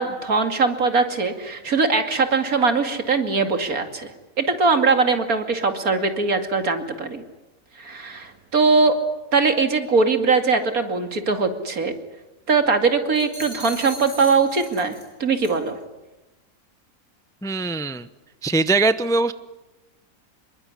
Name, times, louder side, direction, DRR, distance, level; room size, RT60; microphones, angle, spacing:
voice 1, 0.0-4.1 4.4-7.2 7.8-9.0 9.3-11.9 12.5-15.8, right 4 dB, 75° right, 6 dB, 2.9 m, -21 dB
sound 1, 13.2-15.1 15.4-15.7, equal, 60° left, 6.8 m, -38 dB
voice 2, 17.4-18.1 18.4-19.3, right 3 dB, 5° left, 13 dB, 0.6 m, -21 dB
27.0 x 22.5 x 10.0 m, 1.0 s
omnidirectional pair, 1.5 m